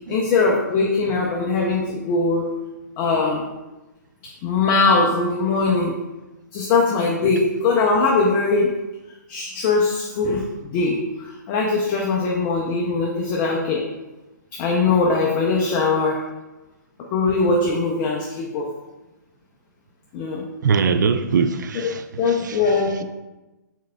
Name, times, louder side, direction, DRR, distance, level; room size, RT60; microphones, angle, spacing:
voice 1, 0.1-2.5 3.0-3.5 4.4-6.0 6.5-8.7 9.3-13.9 14.5-16.2 17.1-18.7 20.1-20.4 22.2-23.0, left 3 dB, 25° left, 0.5 m, -21 dB
voice 2, 20.6-22.8, right 5 dB, 70° right, 0.3 m, -22 dB
4.6 x 3.6 x 2.2 m
hypercardioid pair, 135°, 10 cm